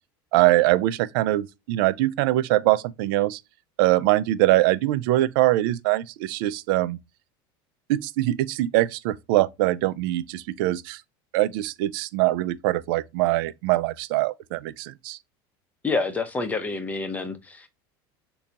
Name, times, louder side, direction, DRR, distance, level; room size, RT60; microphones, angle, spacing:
voice 1, 0.3-3.4 3.8-7.0 7.9-11.0 11.3-15.2, right 16 dB, 70° right, 0.4 m, -23 dB
voice 2, 15.8-17.7, left 3 dB, 10° left, 0.6 m, -28 dB
3.9 x 2.3 x 2.7 m
supercardioid pair, 135°, 12 cm